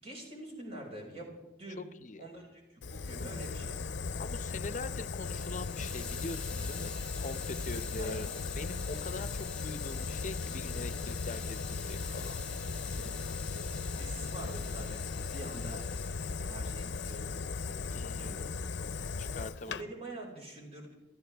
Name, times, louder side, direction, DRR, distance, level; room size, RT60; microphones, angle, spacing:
voice 1, 0.0-1.9 2.2-3.8 7.9-8.3 12.7-13.2 13.9-15.1 15.3-16.0 16.4-18.5 19.6-20.9, right 1 dB, 35° right, -2 dB, 5.2 m, -46 dB
Fire, 2.8-19.8, left 4 dB, 85° left, 0.6 m, -37 dB
voice 2, 4.2-8.3 8.6-12.4 17.9-18.5 19.2-19.8, left 3 dB, 45° left, 12 dB, 0.7 m, -42 dB
Hiss, 4.8-16.4 16.9-17.3, left 3 dB, 5° left, 1.5 m, -48 dB
28.0 x 13.5 x 3.4 m, 1.0 s
head